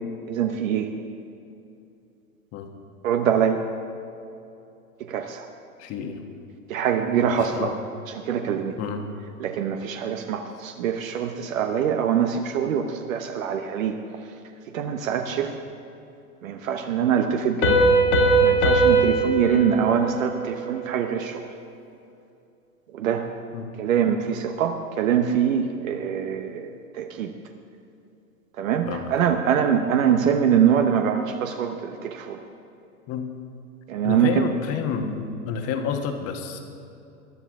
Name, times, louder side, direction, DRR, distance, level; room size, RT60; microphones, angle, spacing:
voice 1, 0.3-0.9 3.0-3.6 5.1-5.5 6.7-7.7 8.1-8.8 9.4-14.0 14.7-15.5 16.4-17.9 18.4-21.4 22.9-23.3 23.8-27.3 28.6-32.4 33.9-34.5, right 8 dB, 60° right, 5 dB, 1.1 m, -24 dB
voice 2, 5.8-6.2 7.3-7.7 8.8-9.1 23.5-23.7 28.9-29.1 33.1-33.3 34.0-36.6, left 6 dB, 30° left, 4 dB, 1.5 m, -30 dB
Piano, 17.6-21.0, right 2 dB, 70° left, 3.0 m, -20 dB
22.5 x 11.0 x 3.7 m, 2.7 s
hypercardioid pair, 120°, 45 cm